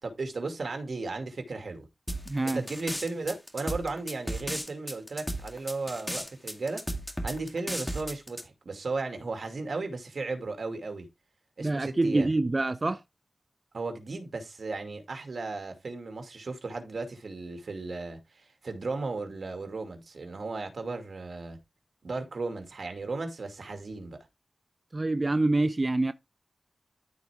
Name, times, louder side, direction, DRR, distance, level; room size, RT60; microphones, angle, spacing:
voice 1, 0.0-1.9 2.5-6.8 7.2-11.1 11.6-12.3 13.7-21.6 22.0-24.2, right 3 dB, 75° right, 2.4 m, -35 dB
sound 1, 2.1-8.4, equal, 5° left, 2.1 m, -34 dB
voice 2, 2.3-2.6 11.6-13.0 24.9-26.1, right 2 dB, 35° right, 0.4 m, -26 dB
13.5 x 4.7 x 3.5 m
wide cardioid pair, 95°, 0 cm